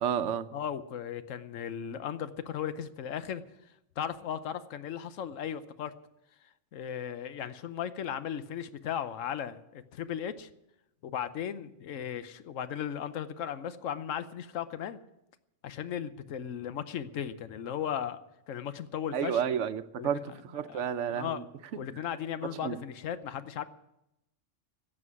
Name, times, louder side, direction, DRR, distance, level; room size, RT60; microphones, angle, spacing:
voice 1, 0.0-0.5 19.1-21.4 22.6-22.8, right 8 dB, 70° right, 12 dB, 1.0 m, -31 dB
voice 2, 0.5-3.4 4.0-5.9 6.7-10.5 11.0-15.0 15.6-18.2 18.5-19.4 20.0-20.2 20.7-21.5 21.8-23.6, left 9 dB, 80° left, 12 dB, 1.2 m, -36 dB
15.5 x 7.6 x 9.6 m, 0.88 s
omnidirectional pair, 1.3 m